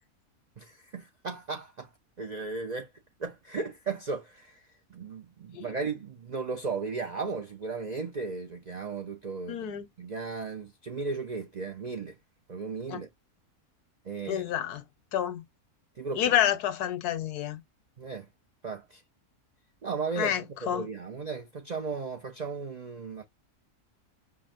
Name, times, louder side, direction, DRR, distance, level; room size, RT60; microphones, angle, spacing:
voice 1, 0.6-1.9 2.2-2.9 3.2-4.6 4.9-12.2 12.5-13.1 14.0-14.5 16.0-16.3 18.0-18.3 18.6-19.0 19.8-23.2, right 4 dB, 90° right, 0.3 m, -36 dB
voice 2, 9.5-9.9 12.9-13.0 14.3-14.8 15.1-15.4 16.1-17.6 20.2-20.4 20.7-20.8, left 11 dB, 90° left, 1.4 m, -28 dB
5.7 x 2.1 x 2.4 m
omnidirectional pair, 1.6 m